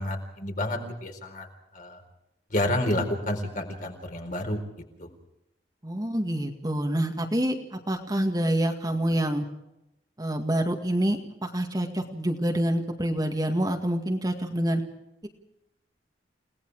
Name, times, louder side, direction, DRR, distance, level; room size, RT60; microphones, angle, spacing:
voice 1, 0.0-1.5 1.7-2.0 2.5-4.6 5.0-5.1, left 1 dB, 45° left, 3 dB, 4.3 m, -29 dB
voice 2, 5.8-9.5 10.2-14.8, right 1 dB, 20° right, 3 dB, 2.0 m, -27 dB
30.0 x 18.5 x 4.8 m, 0.87 s
head